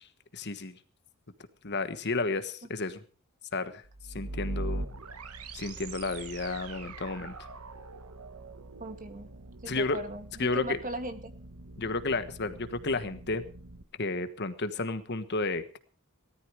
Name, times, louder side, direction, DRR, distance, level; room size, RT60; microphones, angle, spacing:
voice 1, 0.3-0.7 1.6-3.0 3.5-3.8 4.1-4.8 5.5-7.3 9.7-10.0 10.4-10.8 11.8-13.4 14.0-15.8, left 3 dB, 50° left, 11 dB, 1.4 m, -32 dB
sound 1, 3.8-13.8, right 2 dB, 90° right, 1.4 m, -42 dB
voice 2, 8.8-9.3 9.6-11.3, right 1 dB, 40° right, 7 dB, 2.1 m, -39 dB
18.0 x 13.5 x 5.0 m, 0.40 s
head